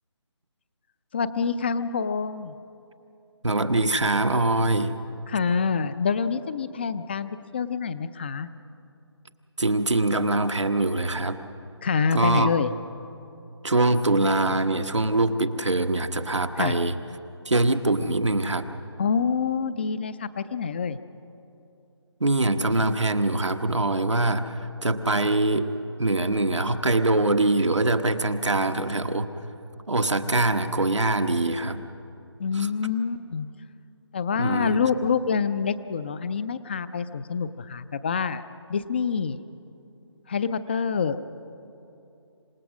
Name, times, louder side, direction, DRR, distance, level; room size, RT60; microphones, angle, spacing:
voice 1, 1.1-2.6 5.3-8.5 11.8-12.7 16.6-16.8 19.0-21.0 32.4-33.5 34.1-38.4 38.7-39.4 40.3-41.2, left 6 dB, 20° left, 13 dB, 0.5 m, -26 dB
voice 2, 3.4-4.9 9.6-11.4 12.1-12.5 13.6-16.9 17.5-18.7 22.2-25.7 26.0-29.3 29.9-31.8 32.6-32.7 34.4-34.8, right 2 dB, 85° right, 7 dB, 1.3 m, -23 dB
27.0 x 17.5 x 6.2 m, 2.8 s
figure-of-eight pair, 155°, 15 cm